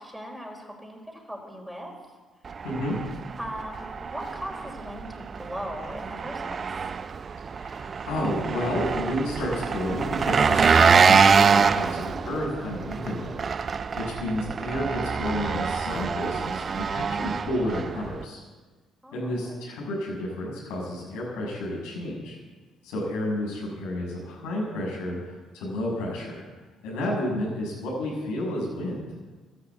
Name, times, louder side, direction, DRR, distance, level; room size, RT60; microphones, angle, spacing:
voice 1, 0.0-1.9 3.4-6.9 19.0-19.6, equal, 5° right, 0 dB, 4.7 m, -39 dB
Engine, 2.5-18.3, right 5 dB, 45° right, 0.6 m, -25 dB
voice 2, 2.6-3.0 7.6-18.4 19.1-22.4 22.8-26.4 26.8-29.0, left 1 dB, 85° left, -3 dB, 6.5 m, -31 dB
13.0 x 12.0 x 8.3 m, 1.3 s
supercardioid pair, 65°, 0 cm